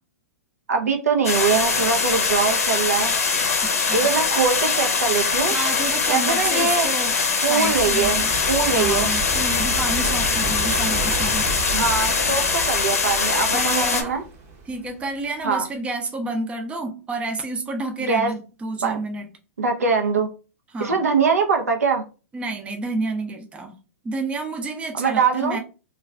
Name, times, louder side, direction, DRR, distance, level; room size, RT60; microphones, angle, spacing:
voice 1, 0.7-3.1 3.9-5.6 6.1-6.9 7.4-8.2 8.5-9.1 11.7-14.2 15.4-15.7 18.1-18.3 18.8-19.0 19.6-20.3 20.8-22.0 24.9-25.6, right 5 dB, 85° right, 4 dB, 0.6 m, -22 dB
sound 1, 1.2-14.0, left 5 dB, 85° left, 0.6 m, -22 dB
voice 2, 3.6-4.1 5.4-8.3 8.7-11.5 13.5-14.2 14.7-19.3 20.7-21.0 22.3-23.7 24.0-25.6, right 2 dB, 15° right, 4 dB, 0.5 m, -30 dB
sound 2, 7.6-15.3, right 3 dB, 45° right, 0.8 m, -32 dB
2.4 x 2.3 x 3.2 m, 0.34 s
hypercardioid pair, 120°, 8 cm